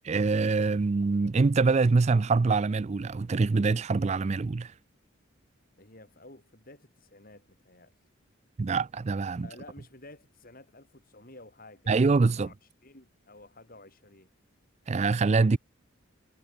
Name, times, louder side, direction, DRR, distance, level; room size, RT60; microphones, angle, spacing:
voice 1, 0.0-4.7 8.6-9.5 11.9-12.5 14.9-15.6, right 4 dB, 35° right, 0.4 m, -24 dB
voice 2, 5.8-7.9 9.4-12.5 12.8-14.3, left 2 dB, 45° left, 7.2 m, -52 dB
head